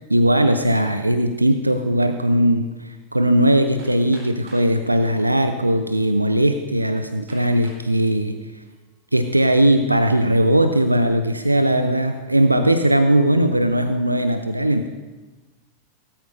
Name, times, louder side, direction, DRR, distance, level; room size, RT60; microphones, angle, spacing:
voice 1, 0.1-8.4 9.1-14.9, right 1 dB, 85° right, 8 dB, 0.5 m, -19 dB
Hammer, 3.8-4.7 5.6-5.7 6.3-6.4 7.3-7.9 8.5-8.9, right 1 dB, 45° right, 4.1 m, -46 dB
17.5 x 13.0 x 2.6 m, 1.2 s
figure-of-eight pair, 90°, 0 cm